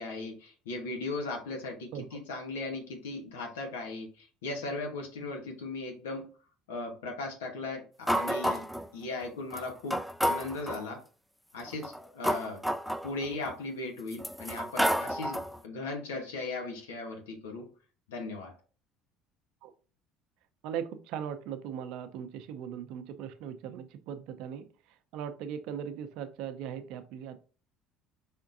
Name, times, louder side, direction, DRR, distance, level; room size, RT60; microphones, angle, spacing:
voice 1, 0.0-6.3 6.7-8.7 8.9-11.0 11.5-12.6 13.0-17.7 18.1-18.6, left 3 dB, 85° left, 2 dB, 1.1 m, -38 dB
sound 1, 8.1-8.9 9.5-9.6 9.9-10.8 11.7-13.5 14.1-15.6, equal, ahead, 0.4 m, -30 dB
voice 2, 20.6-24.6 25.1-27.4, right 8 dB, 70° right, 9 dB, 0.6 m, -39 dB
4.4 x 3.6 x 2.6 m, 0.36 s
hypercardioid pair, 75°, 0 cm